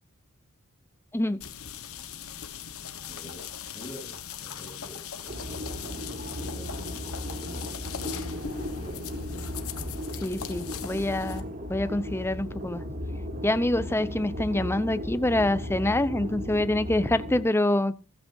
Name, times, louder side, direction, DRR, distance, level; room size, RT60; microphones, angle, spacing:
sound 1, 1.4-11.4, left 7 dB, 70° left, 1.3 m, -40 dB
voice 1, 3.0-5.4 6.2-9.0, equal, 30° left, 7.2 m, -48 dB
sound 2, 5.3-17.4, left 1 dB, 45° right, 3.4 m, -36 dB
voice 2, 10.2-11.4 11.7-12.8 13.4-18.0, left 1 dB, 10° left, 0.6 m, -26 dB
16.0 x 14.5 x 2.7 m
head